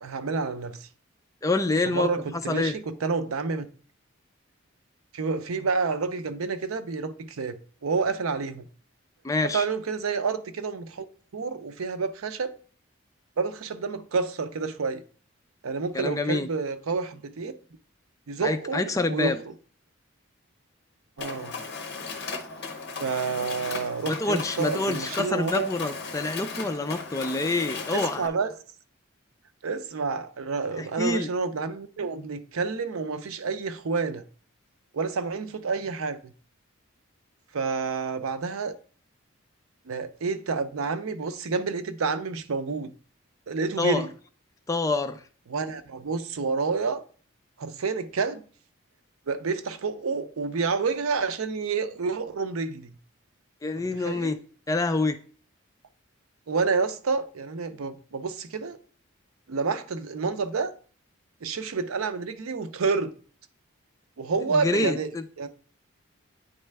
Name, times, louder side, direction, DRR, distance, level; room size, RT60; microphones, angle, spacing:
voice 1, 0.0-0.9 1.9-3.7 5.1-8.7 9.5-11.0 11.3-12.5 13.4-15.0 15.6-17.5 18.3-19.3 21.2-21.5 23.0-25.7 27.9-28.5 29.6-34.2 34.9-36.3 37.5-38.7 39.9-42.9 43.5-44.1 45.5-47.0 47.6-48.4 49.3-52.9 53.8-54.3 56.5-58.8 59.5-60.7 61.4-63.1 64.2-65.1 65.4-65.5, right 4 dB, 90° right, 0.6 m, -29 dB
voice 2, 1.4-2.8 9.2-9.7 15.9-16.5 18.4-19.4 24.1-28.3 30.7-31.3 43.8-44.1 44.7-45.2 53.6-54.4 54.7-55.2 64.5-65.2, left 3 dB, 15° left, 0.3 m, -27 dB
Mechanisms, 21.2-28.3, left 4 dB, 50° left, 0.8 m, -36 dB
9.1 x 3.2 x 3.4 m
head